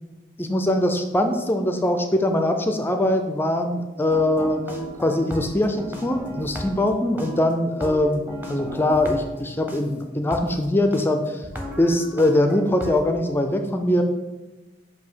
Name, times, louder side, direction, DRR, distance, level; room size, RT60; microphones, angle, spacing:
voice 1, 0.4-4.6 5.0-11.4 11.8-14.0, left 1 dB, 10° left, 5 dB, 0.4 m, -22 dB
sound 1, 4.1-6.9 7.2-9.8 10.3-10.4 10.9-11.0 11.4-13.0, equal, 10° right, 0.8 m, -34 dB
7.5 x 2.7 x 5.6 m, 1.1 s
head